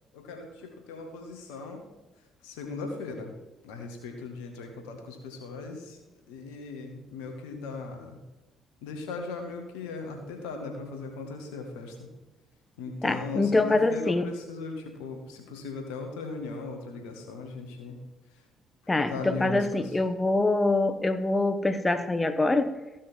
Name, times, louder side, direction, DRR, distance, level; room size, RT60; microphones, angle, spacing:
voice 1, 0.1-1.8 2.4-3.3 3.6-6.0 6.3-8.2 8.8-12.1 12.8-18.0 18.3-18.4 19.1-20.0, left 3 dB, 80° left, 4 dB, 1.8 m, -38 dB
voice 2, 13.0-14.3 18.9-22.8, left 2 dB, 20° left, 10 dB, 1.1 m, -25 dB
15.0 x 6.1 x 4.5 m, 1.1 s
hypercardioid pair, 50°, 0 cm